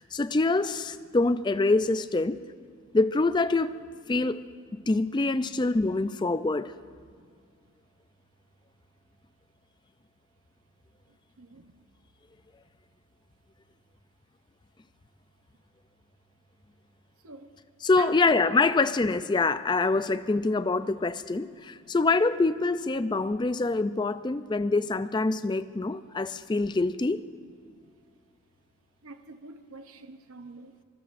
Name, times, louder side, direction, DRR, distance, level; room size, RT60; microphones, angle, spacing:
voice 1, 0.0-2.4 2.9-3.8 4.1-4.4 4.7-6.7 17.8-27.2, left 3 dB, 20° left, 0.3 m, -25 dB
voice 2, 11.4-11.8 17.2-17.5 18.0-18.2 21.8-21.9 27.6-27.9 29.0-30.8, right 4 dB, 80° right, 0.8 m, -46 dB
25.0 x 23.0 x 2.6 m
head